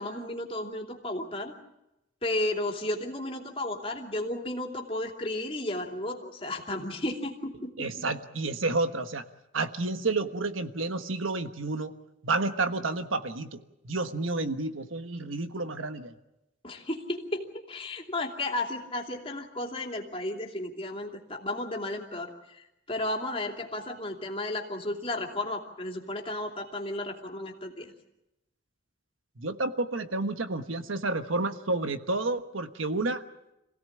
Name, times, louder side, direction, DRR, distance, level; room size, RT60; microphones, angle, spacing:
voice 1, 0.0-1.5 2.2-7.9 16.6-27.9, left 1 dB, 30° left, 1 dB, 2.8 m, -33 dB
voice 2, 7.8-9.2 9.5-11.9 12.2-16.1 29.4-33.2, right 3 dB, 85° right, 9 dB, 1.3 m, -30 dB
27.0 x 17.0 x 8.7 m, 0.93 s
head